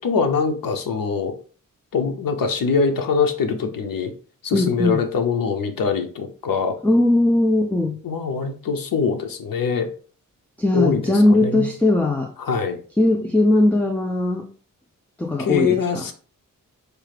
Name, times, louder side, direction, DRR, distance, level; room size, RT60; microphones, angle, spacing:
voice 1, 0.0-1.3 1.9-4.1 4.4-6.8 8.0-9.9 10.7-11.7 12.4-12.8 15.4-16.1, left 5 dB, 90° left, 6 dB, 0.7 m, -23 dB
voice 2, 4.5-5.0 6.8-8.0 10.6-12.3 13.0-14.5 15.2-16.0, left 2 dB, 5° left, 2 dB, 0.3 m, -19 dB
4.6 x 2.4 x 3.2 m, 0.40 s
wide cardioid pair, 175°, 33 cm